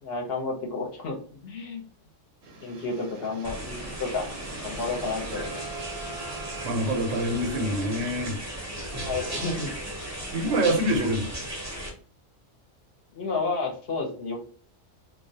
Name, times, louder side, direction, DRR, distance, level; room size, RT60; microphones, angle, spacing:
voice 1, 0.0-1.2 1.4-1.9 2.6-4.3 4.6-5.7 9.1-9.7 13.1-14.5, left 3 dB, 60° left, 1 dB, 0.8 m, -31 dB
sound 1, 2.4-10.7, right 4 dB, 65° right, 0.7 m, -42 dB
sound 2, 3.4-11.9, right 1 dB, 20° right, 0.4 m, -36 dB
voice 2, 6.6-8.6 10.3-11.3, right 1 dB, 85° right, 5 dB, 1.0 m, -26 dB
2.3 x 2.1 x 2.6 m, 0.43 s
omnidirectional pair, 1.3 m